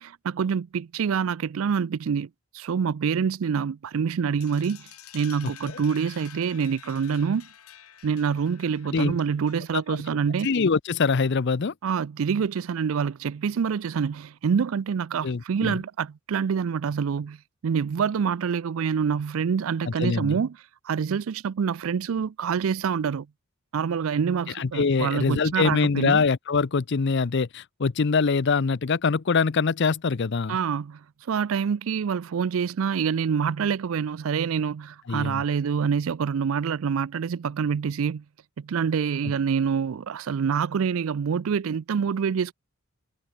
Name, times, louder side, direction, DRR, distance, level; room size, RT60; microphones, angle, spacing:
voice 1, 0.0-2.3 2.5-4.9 5.1-7.5 8.0-10.5 11.8-17.4 17.6-20.6 20.9-23.3 23.7-26.2 30.5-31.0 31.3-38.2 38.6-42.5, right 6 dB, 65° right, 0.4 m, -26 dB
sound 1, 4.4-9.9, left 10 dB, 80° left, 2.2 m, -49 dB
voice 2, 10.4-11.7 15.2-15.8 19.9-20.4 24.5-30.6 35.1-35.4, left 4 dB, 50° left, 0.6 m, -24 dB
head